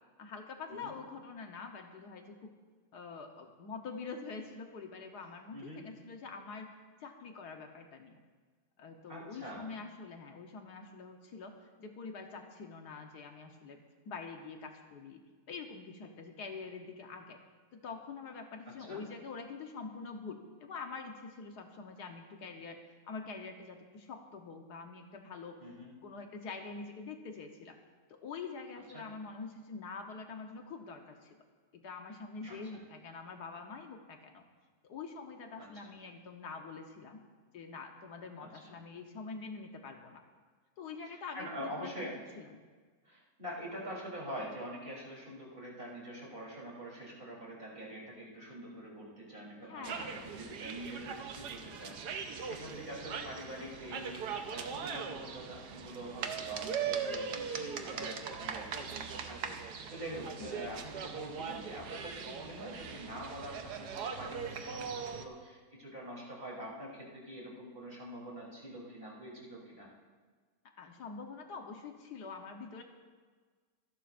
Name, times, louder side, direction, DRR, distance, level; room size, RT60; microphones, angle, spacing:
voice 1, 0.2-2.5 2.9-6.7 7.0-8.2 8.8-11.5 11.8-13.8 14.0-15.2 15.5-17.4 17.7-22.8 23.1-25.6 26.0-27.8 28.1-31.4 31.7-34.4 34.9-37.2 37.5-40.2 40.8-42.1 42.4-42.7 49.6-50.3 60.4-60.5 70.8-72.8, left 4 dB, 75° left, 3 dB, 1.6 m, -45 dB
voice 2, 9.1-9.7 18.9-19.0 25.6-25.9 28.9-29.1 32.4-32.6 35.6-35.9 38.4-38.7 41.1-42.2 43.0-69.9, right 1 dB, 30° right, -5 dB, 3.7 m, -45 dB
sound 1, 49.8-65.3, right 6 dB, 75° right, 1.4 m, -40 dB
25.5 x 11.5 x 2.6 m, 1.5 s
omnidirectional pair, 1.8 m